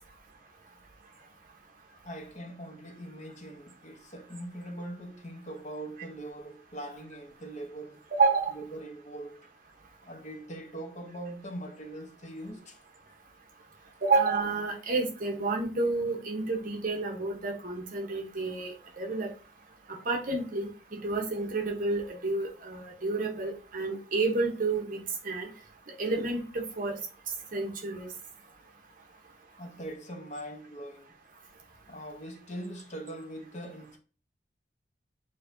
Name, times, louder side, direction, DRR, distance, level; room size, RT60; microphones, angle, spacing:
voice 1, 2.0-8.0 8.5-9.5 10.0-12.8 29.6-31.1 31.9-34.0, right 1 dB, 40° left, 0.8 m, -42 dB
voice 2, 8.1-8.5 14.0-19.3 20.1-20.7 21.0-25.5 26.0-26.9 27.5-28.1, right 3 dB, 50° right, 1.0 m, -29 dB
6.8 x 2.8 x 2.6 m
head